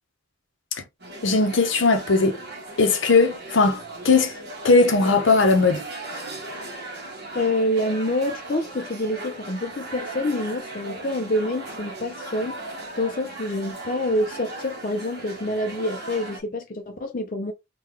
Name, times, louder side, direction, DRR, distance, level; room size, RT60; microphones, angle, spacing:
sound 1, 1.0-16.4, right 2 dB, 55° right, 1.3 m, -37 dB
voice 1, 1.2-2.4 2.8-3.8 4.0-4.3 4.6-5.8, left 3 dB, 70° left, 0.8 m, -18 dB
voice 2, 7.3-12.6 13.0-17.5, left 1 dB, 45° left, 0.5 m, -27 dB
3.8 x 2.4 x 3.2 m
head